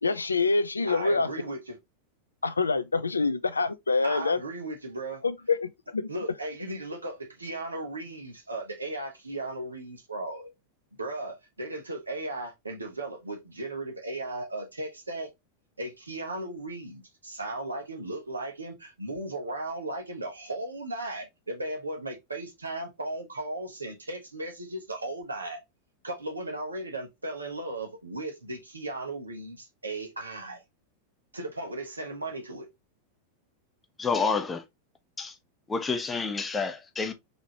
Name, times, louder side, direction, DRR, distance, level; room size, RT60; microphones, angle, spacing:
voice 1, 0.0-1.3 2.4-4.4 5.2-6.1, left 3 dB, 80° left, 0.4 m, -26 dB
voice 2, 0.9-1.8 4.0-5.2 6.1-10.5 11.0-15.3 15.8-25.6 26.0-30.6 31.3-32.7, right 2 dB, 80° right, 1.1 m, -36 dB
voice 3, 34.0-34.6 35.2-35.3 35.7-37.1, left 4 dB, 15° left, 0.7 m, -29 dB
4.1 x 3.0 x 2.9 m
figure-of-eight pair, 90°, 0 cm